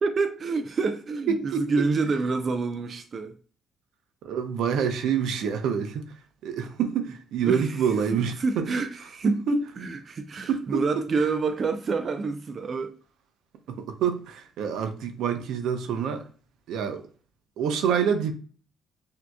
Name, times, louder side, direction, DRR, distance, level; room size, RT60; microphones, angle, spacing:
voice 1, 0.0-3.3 7.4-7.7 8.2-9.4 9.8-13.0, right 4 dB, 45° right, 0.5 m, -27 dB
voice 2, 1.3-1.9 4.2-6.1 6.4-8.7 9.2-9.6 10.5-10.6 13.7-16.2 16.7-17.0 17.6-18.3, right 7 dB, 85° right, 0.7 m, -26 dB
6.0 x 2.8 x 2.3 m
cardioid pair, 90°, 0 cm